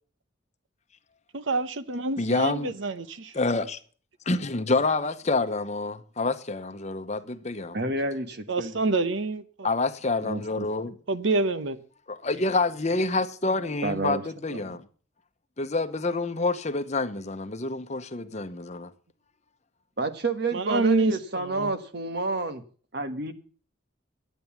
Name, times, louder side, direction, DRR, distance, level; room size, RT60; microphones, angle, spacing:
voice 1, 1.3-3.3 8.5-9.7 11.1-11.8 20.5-21.7, right 3 dB, 75° right, 0.9 m, -27 dB
voice 2, 2.2-2.7 3.3-3.8 4.3-7.8 9.6-11.0 12.2-14.9 15.6-18.9, left 3 dB, 35° left, 0.9 m, -27 dB
voice 3, 7.7-8.7 10.2-10.7 13.8-14.2 14.5-14.8 20.0-22.6 22.9-23.3, right 2 dB, 55° right, 1.5 m, -30 dB
11.0 x 9.3 x 7.1 m
head